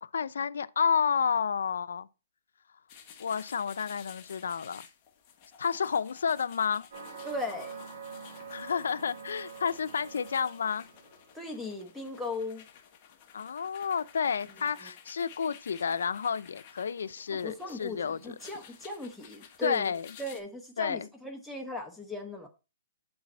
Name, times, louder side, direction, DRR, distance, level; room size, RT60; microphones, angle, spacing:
voice 1, 0.0-2.1 3.2-4.8 5.6-6.9 8.5-10.9 13.3-18.4 19.6-20.1 20.8-21.1, left 6 dB, 80° left, 0.5 m, -30 dB
sound 1, 2.9-20.4, left 8 dB, 30° left, 1.2 m, -53 dB
sound 2, 6.9-11.3, right 5 dB, 65° right, 3.2 m, -45 dB
voice 2, 7.2-7.8 11.3-12.6 14.8-14.9 17.3-19.9 20.2-22.5, left 2 dB, ahead, 1.0 m, -37 dB
8.7 x 4.0 x 4.2 m
hypercardioid pair, 155°, 0 cm